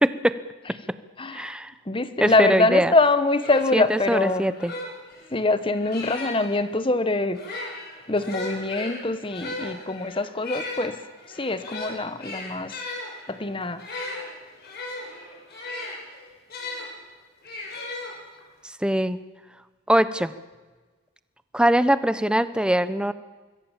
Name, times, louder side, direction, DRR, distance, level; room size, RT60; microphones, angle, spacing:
voice 1, 0.0-0.3 1.3-1.7 2.2-2.9 3.7-4.7 18.8-19.2 19.9-20.3 21.5-23.1, right 1 dB, 5° right, 13 dB, 0.7 m, -22 dB
voice 2, 1.2-1.5 1.9-4.4 5.3-7.4 8.1-11.0 11.3-12.7 13.3-13.8, left 2 dB, 25° left, 12 dB, 1.1 m, -24 dB
sound 1, 2.9-3.0 3.3-6.6 7.3-16.9 17.4-18.5, left 2 dB, 50° left, 6.5 m, -36 dB
25.5 x 21.5 x 7.4 m, 1.3 s
head